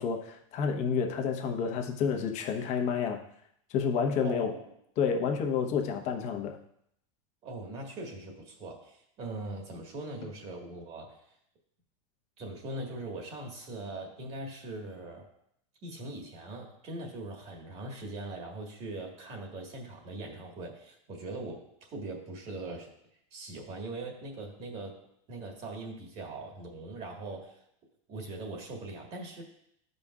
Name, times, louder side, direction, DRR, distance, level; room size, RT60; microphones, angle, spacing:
voice 1, 0.0-3.2 3.7-4.5 5.0-6.6, left 6 dB, 45° left, 4 dB, 1.1 m, -29 dB
voice 2, 4.2-4.6 7.4-11.2 12.4-15.3 15.8-22.9 23.3-25.0 25.3-27.6 28.1-29.4, right 2 dB, 40° right, 1 dB, 1.8 m, -41 dB
12.5 x 5.2 x 2.4 m, 0.72 s
supercardioid pair, 140°, 17 cm